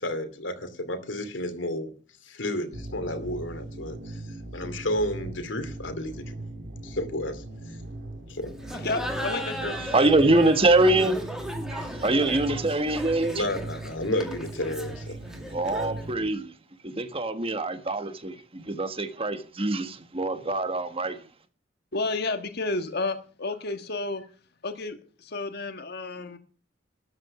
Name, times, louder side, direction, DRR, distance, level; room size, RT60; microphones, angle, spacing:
voice 1, 0.0-1.9 2.2-4.2 4.5-6.3 6.8-7.4 8.3-8.6 13.3-15.2, left 1 dB, 90° left, 2.6 m, -31 dB
sound 1, 2.7-16.3, right 2 dB, 65° right, 2.9 m, -39 dB
Laughter, 8.6-16.1, equal, 5° right, 2.1 m, -36 dB
voice 2, 8.7-10.0 21.9-24.3 24.6-26.4, left 3 dB, 60° left, 1.5 m, -31 dB
voice 3, 9.9-11.2 11.7-13.4 15.5-16.5 16.8-21.2, right 2 dB, 30° right, 1.5 m, -24 dB
13.0 x 9.7 x 6.0 m
head